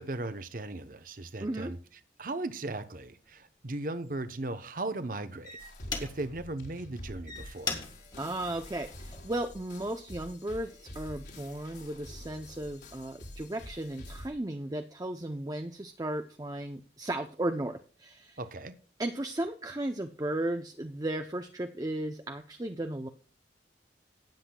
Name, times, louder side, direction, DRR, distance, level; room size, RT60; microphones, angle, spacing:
voice 1, 0.0-1.8 2.2-5.6 6.0-7.8 18.4-18.8, right 2 dB, 50° right, 0.8 m, -37 dB
voice 2, 1.4-1.7 8.2-18.4 19.0-23.1, right 1 dB, 20° right, 0.5 m, -35 dB
sound 1, 3.2-3.4 4.0-4.3 5.0-5.1 5.4-6.5 7.0-9.4 10.0-10.3, left 4 dB, 25° left, 1.7 m, -39 dB
sound 2, 5.6-14.3, left 1 dB, 70° left, 4.0 m, -47 dB
18.0 x 7.7 x 2.3 m
head